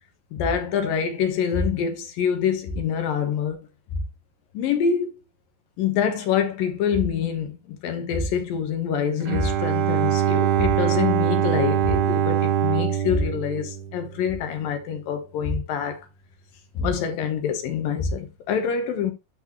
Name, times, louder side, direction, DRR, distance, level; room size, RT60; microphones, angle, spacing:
voice 1, 0.3-3.7 4.5-5.1 5.8-16.0 16.7-19.1, left 7 dB, 70° left, 2.6 m, -25 dB
Bowed string instrument, 9.2-14.5, right 10 dB, 85° right, 3.2 m, -23 dB
12.0 x 4.1 x 3.0 m
omnidirectional pair, 4.6 m